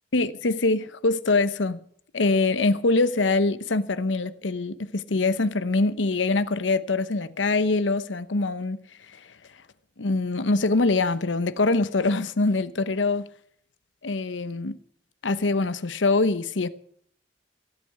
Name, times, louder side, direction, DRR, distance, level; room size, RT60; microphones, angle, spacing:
voice 1, 0.1-1.8 2.1-8.8 10.0-13.3 14.0-14.8 15.2-16.7, left 3 dB, 90° left, 0.9 m, -24 dB
16.5 x 8.7 x 7.6 m
head